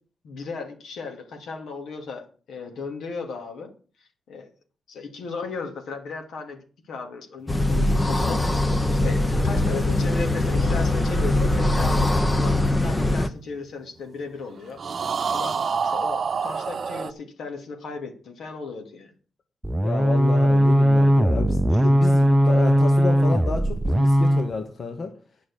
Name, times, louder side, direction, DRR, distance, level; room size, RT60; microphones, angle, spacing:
voice 1, 0.2-3.7 4.3-4.5 4.9-19.1 21.7-21.8, left 4 dB, 80° left, 4 dB, 2.7 m, -36 dB
sound 1, 7.5-13.3, left 2 dB, 20° left, 1.0 m, -22 dB
sound 2, 8.1-13.7 14.8-17.1, right 5 dB, 50° right, 0.8 m, -31 dB
sound 3, 19.6-24.5, equal, 15° right, 0.6 m, -19 dB
voice 2, 19.8-25.1, left 4 dB, 50° left, 5 dB, 1.5 m, -30 dB
9.8 x 6.2 x 8.6 m, 0.40 s
cardioid pair, 90°, 0 cm